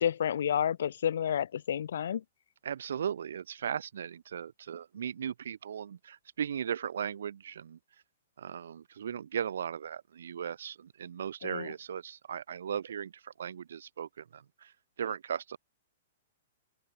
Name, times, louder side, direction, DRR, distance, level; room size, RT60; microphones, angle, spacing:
voice 1, 0.0-2.2 11.4-11.7, left 9 dB, 75° left, 1.1 m, -30 dB
voice 2, 2.6-7.8 8.4-14.7 15.0-15.6, right 8 dB, 80° right, 2.5 m, -37 dB
open air
hypercardioid pair, 145°, 0 cm